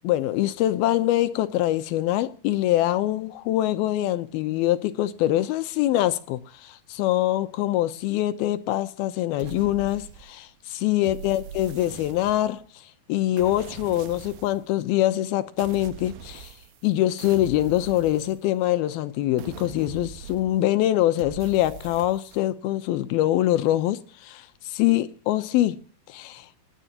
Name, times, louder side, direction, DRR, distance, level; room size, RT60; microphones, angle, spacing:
voice 1, 0.0-12.6 13.1-16.5 16.8-25.8 26.1-26.5, left 14 dB, 80° left, 2.7 m, -24 dB
sound 1, 9.4-10.5 11.0-12.7 13.4-14.7 15.6-16.9 17.2-18.8 19.4-20.7 21.2-22.5, right 9 dB, 75° right, 2.5 m, -42 dB
28.0 x 10.5 x 2.9 m
omnidirectional pair, 4.4 m